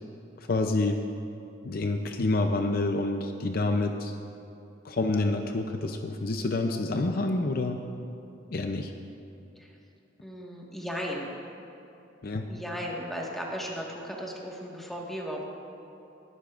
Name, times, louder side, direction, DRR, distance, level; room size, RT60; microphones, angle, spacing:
voice 1, 0.5-1.0 1.6-4.1 4.8-7.8 8.5-8.9 12.2-12.5, left 2 dB, 55° left, 5 dB, 0.6 m, -28 dB
voice 2, 10.2-11.3 12.5-15.4, equal, ahead, -3 dB, 1.6 m, -36 dB
20.5 x 11.5 x 2.5 m, 2.8 s
head